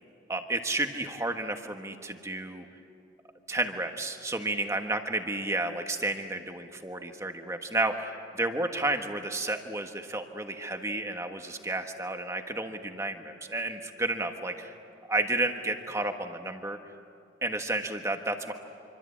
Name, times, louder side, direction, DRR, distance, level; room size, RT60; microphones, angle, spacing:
voice 1, 0.3-2.6 3.5-14.7 15.1-16.8 17.4-18.5, right 2 dB, 15° right, 5 dB, 1.4 m, -31 dB
26.0 x 25.0 x 8.7 m, 2.5 s
head